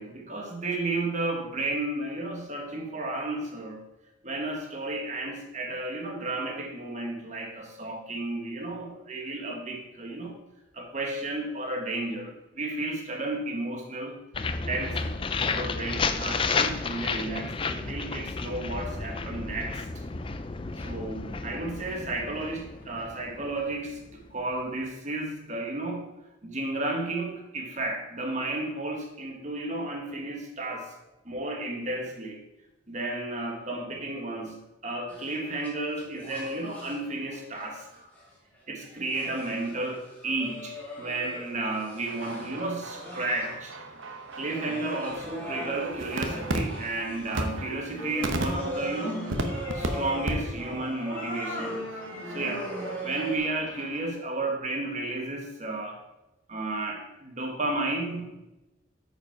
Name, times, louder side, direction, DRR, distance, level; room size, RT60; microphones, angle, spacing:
voice 1, 0.0-3.9 4.2-10.4 10.7-14.1 14.7-15.2 15.5-19.8 20.8-26.1 26.4-30.9 31.2-32.4 32.9-38.1 38.7-43.7 44.3-49.4 49.7-52.7 53.0-56.0 56.5-58.3, right 2 dB, 40° right, 2 dB, 1.4 m, -33 dB
sound 1, 14.3-24.1, left 4 dB, 25° left, 0.4 m, -32 dB
sound 2, 35.1-37.0 37.3-38.3 38.9-43.8 44.3-53.4, equal, 10° left, 1.8 m, -39 dB
sound 3, 42.1-49.9 50.2-50.3 50.6-50.9 51.2-54.1, right 2 dB, 90° right, 0.9 m, -36 dB
8.9 x 5.2 x 4.6 m, 0.97 s
head